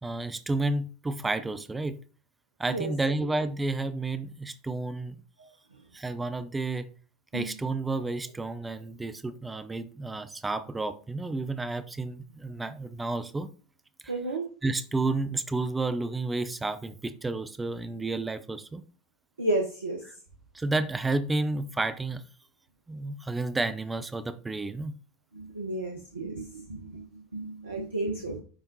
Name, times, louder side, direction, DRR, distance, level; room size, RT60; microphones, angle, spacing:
voice 1, 0.0-2.0 2.6-5.2 5.9-6.9 7.3-13.5 14.6-18.8 20.5-22.2 22.9-24.9, right 2 dB, 15° right, 11 dB, 0.6 m, -31 dB
voice 2, 14.1-14.5 19.4-20.0 25.3-28.4, right 2 dB, 80° right, 3 dB, 0.8 m, -32 dB
9.9 x 3.6 x 2.7 m, 0.37 s
figure-of-eight pair, 75°, 0 cm